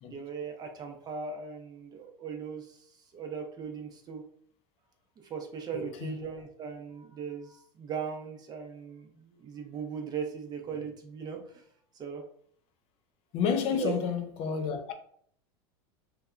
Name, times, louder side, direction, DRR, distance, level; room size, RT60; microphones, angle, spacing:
voice 1, 0.1-4.2 5.3-11.6 11.9-12.2 13.7-13.9, right 6 dB, 30° right, 0.6 m, -39 dB
voice 2, 5.7-6.2 13.3-14.9, left 6 dB, 45° left, 0.4 m, -30 dB
2.7 x 2.2 x 2.4 m
hypercardioid pair, 105°, 13 cm